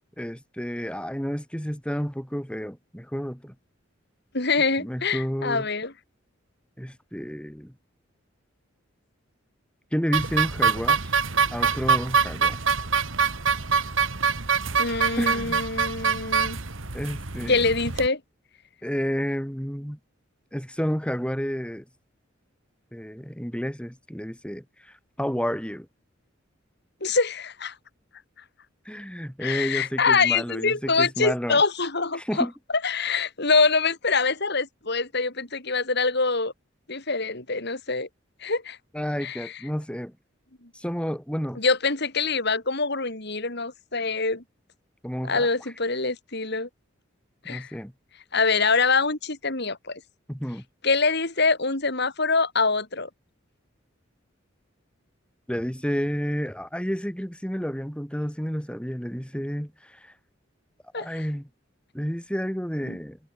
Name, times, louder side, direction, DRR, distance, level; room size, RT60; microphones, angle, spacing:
voice 1, 0.2-3.5 4.8-5.7 6.8-7.7 9.9-11.2 11.5-12.6 15.2-15.6 16.9-17.6 18.8-20.0 20.5-21.8 22.9-25.9 28.9-31.6 32.2-32.5 38.9-40.1 40.7-41.6 45.0-45.5 47.5-47.9 50.3-50.6 55.5-60.1 60.9-61.5 61.9-63.2, equal, 5° left, 5.9 m, -30 dB
voice 2, 4.3-5.9 14.8-16.6 17.5-18.2 27.0-27.7 29.4-32.5 32.8-36.5 36.9-38.1 38.4-38.8 39.2-39.5 41.6-44.4 45.2-46.7 47.5-47.7 48.3-50.0 50.8-53.1 60.9-61.1 62.9-63.0, left 4 dB, 55° left, 4.2 m, -24 dB
sound 1, 10.1-18.1, right 5 dB, 75° right, 2.2 m, -25 dB
head